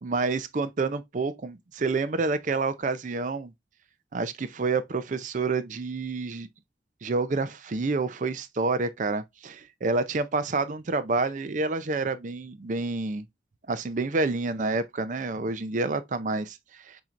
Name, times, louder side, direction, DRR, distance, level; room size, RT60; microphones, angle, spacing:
voice 1, 0.0-3.5 4.1-6.5 7.0-13.2 13.7-17.0, right 3 dB, 45° right, 0.5 m, -28 dB
7.2 x 2.7 x 2.4 m
head